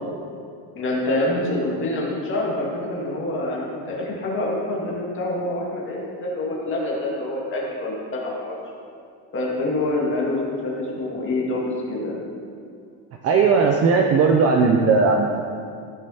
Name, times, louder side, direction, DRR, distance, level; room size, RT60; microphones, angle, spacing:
voice 1, 0.7-8.5 9.3-12.2, left 2 dB, 25° left, -4 dB, 1.8 m, -26 dB
voice 2, 13.2-15.4, right 4 dB, 35° right, 2 dB, 0.4 m, -17 dB
14.5 x 5.3 x 4.1 m, 2.3 s
cardioid pair, 170°, 49 cm